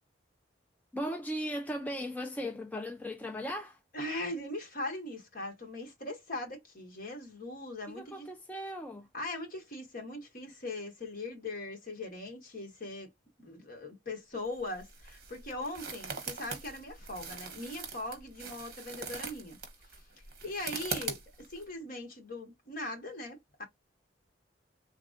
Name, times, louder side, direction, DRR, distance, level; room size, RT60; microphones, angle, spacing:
voice 1, 0.9-3.8 7.9-9.1, equal, 10° left, 0.4 m, -37 dB
voice 2, 3.9-8.3 9.1-13.1 13.4-19.6 20.4-23.6, left 2 dB, 50° left, 1.4 m, -40 dB
sound 1, 14.5-21.6, right 5 dB, 55° right, 1.0 m, -42 dB
3.3 x 2.4 x 2.5 m
head